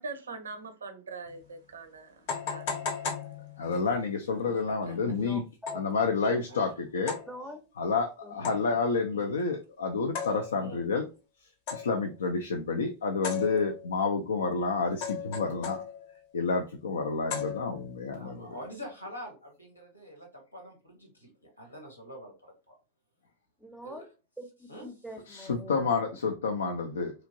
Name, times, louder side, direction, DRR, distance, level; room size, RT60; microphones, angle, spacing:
voice 1, 0.0-3.1, right 4 dB, 70° right, 0.5 m, -43 dB
sound 1, 1.3-1.4 2.3-3.9 5.7-6.0 7.1-7.4 8.4-8.9 10.1-10.8 11.7-12.1 13.2-14.0 15.0-16.2 17.3-18.0, left 6 dB, 50° left, 0.7 m, -36 dB
voice 2, 3.6-5.4 5.7-7.2 7.8-11.1 11.7-15.8 16.3-18.5 25.3-27.1, left 4 dB, 65° left, 0.3 m, -29 dB
voice 3, 4.4-5.0 6.5-6.7 9.1-9.3 10.6-10.8 18.1-20.3 20.5-21.3 21.6-22.3 22.7-22.8 23.8-24.1 24.7-24.9, equal, 85° left, 1.0 m, -45 dB
voice 4, 5.2-5.8 7.3-7.6 8.2-8.3 23.6-24.1 24.4-26.2, equal, ahead, 0.6 m, -44 dB
2.9 x 2.5 x 2.5 m
figure-of-eight pair, 90°, 0 cm